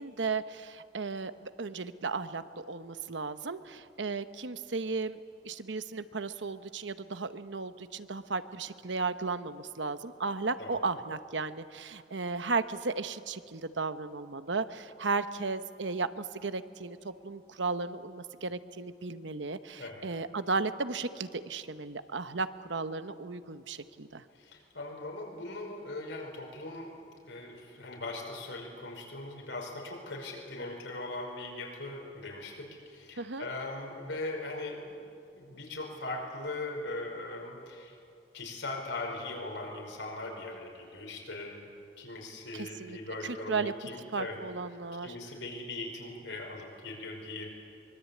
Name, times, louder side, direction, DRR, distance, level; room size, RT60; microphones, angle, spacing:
voice 1, 0.0-5.2 5.4-24.2 33.2-33.5 42.5-43.0 43.2-43.7 44.1-45.1, right 4 dB, 80° right, 11 dB, 1.0 m, -35 dB
voice 2, 24.3-26.9 27.2-35.0 35.3-38.0 38.3-41.7 42.0-44.4 45.0-47.5, left 2 dB, 80° left, 0 dB, 5.5 m, -40 dB
24.0 x 23.0 x 8.5 m, 2.4 s
head